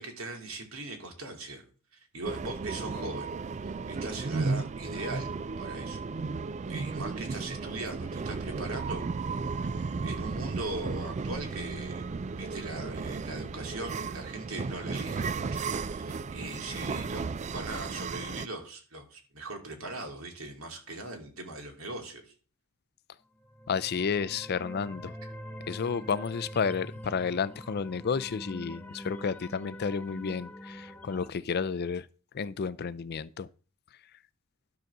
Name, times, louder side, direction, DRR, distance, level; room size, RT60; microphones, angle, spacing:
voice 1, 0.0-1.6 2.1-3.4 3.6-5.3 5.6-6.0 6.7-9.0 9.6-12.1 12.4-22.3, right 2 dB, 75° right, 2.5 m, -40 dB
sound 1, 2.2-18.5, right 4 dB, 35° right, 0.3 m, -34 dB
sound 2, 23.4-31.3, equal, 10° left, 0.8 m, -44 dB
voice 2, 23.7-25.2 25.7-32.1 32.3-33.5, left 6 dB, 50° left, 0.5 m, -31 dB
12.0 x 4.0 x 6.6 m
head